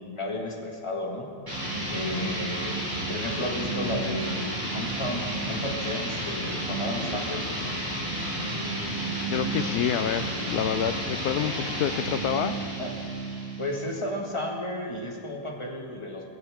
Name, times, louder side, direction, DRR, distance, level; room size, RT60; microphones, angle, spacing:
voice 1, 0.0-1.3 1.9-2.7 3.1-7.4 12.8-12.9 13.6-16.3, left 1 dB, 20° left, 0 dB, 1.8 m, -33 dB
sound 1, 1.5-14.0, right 1 dB, 15° right, 3.7 m, -31 dB
voice 2, 9.3-12.6, left 9 dB, 85° left, 11 dB, 1.1 m, -28 dB
18.0 x 16.5 x 3.7 m, 2.2 s
omnidirectional pair, 1.7 m